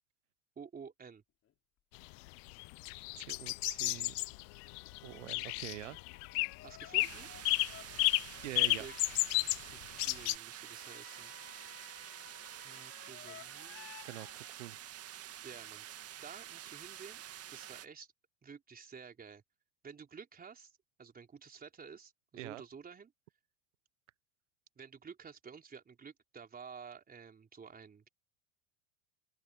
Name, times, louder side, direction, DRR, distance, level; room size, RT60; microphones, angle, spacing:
voice 1, 0.6-1.2 6.6-7.3 8.8-8.9 9.3-11.3 12.6-14.0 15.4-15.9 16.2-17.2 17.5-18.1 18.4-19.4 19.8-20.7 21.0-23.1 24.8-28.1, right 6 dB, 25° right, 3.9 m, -51 dB
sound 1, 1.5-1.6 4.3-9.4 10.5-14.5, left 10 dB, 40° left, 3.8 m, -57 dB
sound 2, 2.0-10.4, left 32 dB, 60° left, 0.5 m, -32 dB
voice 2, 3.1-4.2 5.0-6.0 8.4-8.9 14.0-14.8 22.4-22.6, right 18 dB, 85° right, 0.6 m, -45 dB
sound 3, 7.0-17.9, right 12 dB, 40° right, 2.2 m, -48 dB
open air
hypercardioid pair, 95°, 36 cm